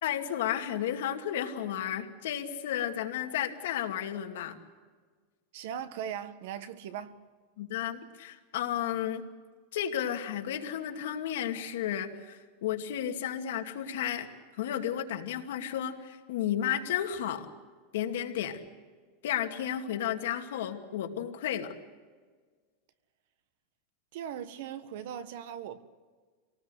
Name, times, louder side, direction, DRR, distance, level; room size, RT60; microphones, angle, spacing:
voice 1, 0.0-4.6 7.6-9.2 9.7-14.3 14.6-17.5 17.9-18.6 19.2-21.7, left 10 dB, 70° left, 2.4 m, -33 dB
voice 2, 5.5-7.2 24.1-25.8, right 9 dB, 55° right, 1.5 m, -39 dB
26.5 x 19.0 x 8.1 m
supercardioid pair, 180°, 0 cm